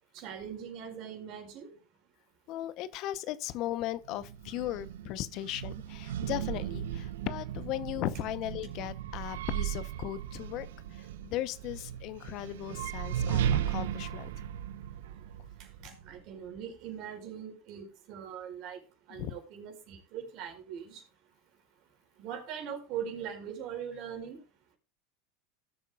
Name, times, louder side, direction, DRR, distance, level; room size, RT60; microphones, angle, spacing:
voice 1, 0.1-1.7 15.6-18.8 19.1-21.0 22.2-24.4, right 8 dB, 55° right, 4.9 m, -41 dB
voice 2, 2.5-14.3 19.1-19.3, left 14 dB, 55° left, 0.8 m, -37 dB
sound 1, 4.1-16.2, right 10 dB, 80° right, 0.9 m, -36 dB
18.5 x 8.4 x 2.4 m
hypercardioid pair, 95°, 0 cm